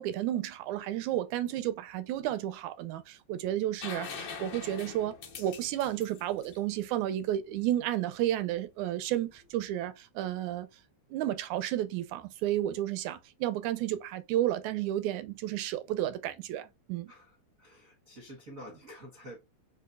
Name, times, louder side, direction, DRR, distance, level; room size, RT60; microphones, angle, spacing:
voice 1, 0.0-10.7 11.1-17.1, right 12 dB, 90° right, 2.0 m, -32 dB
sound 1, 3.8-7.5 9.4-9.5, left 5 dB, 65° left, 1.1 m, -43 dB
voice 2, 17.1-19.4, equal, 60° right, 0.8 m, -48 dB
6.1 x 2.9 x 2.3 m
omnidirectional pair, 3.3 m